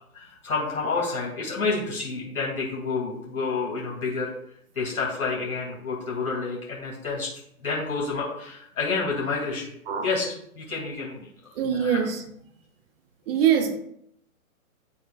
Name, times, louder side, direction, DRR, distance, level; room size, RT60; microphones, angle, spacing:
voice 1, 0.1-4.3 4.7-7.3 7.6-9.7 10.0-12.0, left 4 dB, 85° left, -3 dB, 2.8 m, -29 dB
voice 2, 11.6-12.2 13.3-13.8, right 8 dB, 40° right, 6 dB, 1.1 m, -23 dB
11.5 x 4.3 x 2.4 m, 0.72 s
hypercardioid pair, 135°, 43 cm